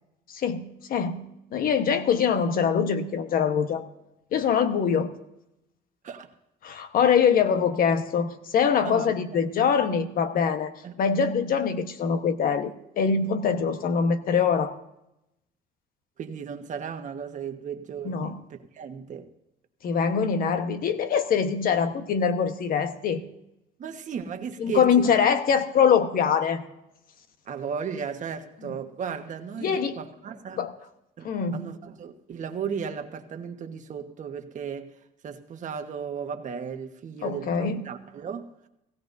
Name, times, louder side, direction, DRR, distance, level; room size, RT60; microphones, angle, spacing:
voice 1, 0.3-1.2 1.5-3.9 4.3-5.1 6.6-10.7 11.0-14.7 18.0-18.4 19.8-23.2 24.6-26.6 28.6-28.7 29.6-30.0 30.6-30.7 31.2-31.6 37.2-37.8, left 6 dB, 60° left, 1.2 m, -23 dB
voice 2, 8.8-9.4 10.8-10.9 16.2-19.3 23.8-25.2 27.4-30.7 31.2-34.9 35.2-38.5, right 7 dB, 45° right, 1.4 m, -35 dB
18.0 x 16.5 x 2.7 m
cardioid pair, 110°, 17 cm